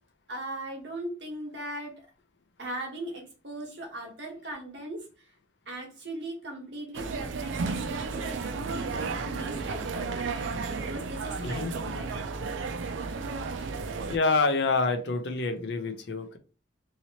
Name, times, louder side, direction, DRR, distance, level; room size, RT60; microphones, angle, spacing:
voice 1, 0.3-2.1 2.6-5.3 5.7-10.5 10.8-12.2 14.0-14.1, right 1 dB, 65° right, 1 dB, 1.2 m, -39 dB
sound 1, 6.9-14.2, right 4 dB, 85° right, 0.4 m, -33 dB
voice 2, 11.4-11.7 14.1-16.4, left 3 dB, 65° left, 7 dB, 0.5 m, -27 dB
2.8 x 2.8 x 2.8 m, 0.34 s
head